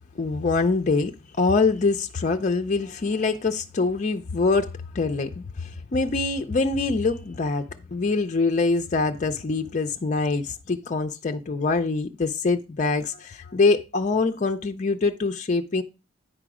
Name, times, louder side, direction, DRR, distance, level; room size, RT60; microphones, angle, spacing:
voice 1, 0.2-15.8, left 3 dB, 35° left, 0.4 m, -24 dB
9.1 x 5.0 x 4.8 m
head